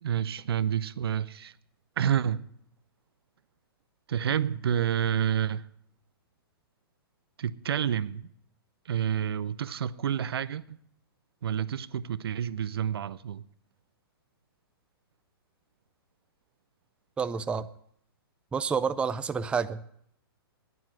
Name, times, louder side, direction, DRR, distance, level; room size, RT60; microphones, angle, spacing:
voice 1, 0.0-1.5 2.0-2.4 4.1-5.6 7.4-8.3 8.9-10.8 11.4-13.4, right 9 dB, 75° right, 0.6 m, -29 dB
voice 2, 17.2-17.7 18.5-19.9, right 6 dB, 10° right, 0.4 m, -29 dB
9.8 x 9.5 x 7.6 m
hypercardioid pair, 130°, 13 cm